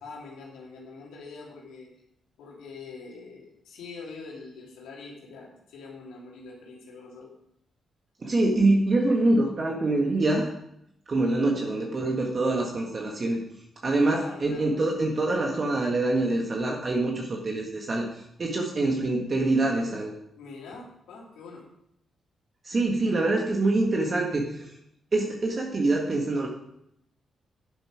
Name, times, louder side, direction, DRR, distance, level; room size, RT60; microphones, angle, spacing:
voice 1, 0.0-1.9 2.4-7.3 14.0-14.7 20.4-21.7 23.0-23.5, left 4 dB, 85° left, -3 dB, 2.9 m, -44 dB
voice 2, 8.2-10.5 11.1-13.4 13.8-20.1 22.6-24.6 25.1-26.5, right 2 dB, 45° right, 0 dB, 1.8 m, -25 dB
10.5 x 7.6 x 5.0 m, 0.77 s
supercardioid pair, 60°, 0 cm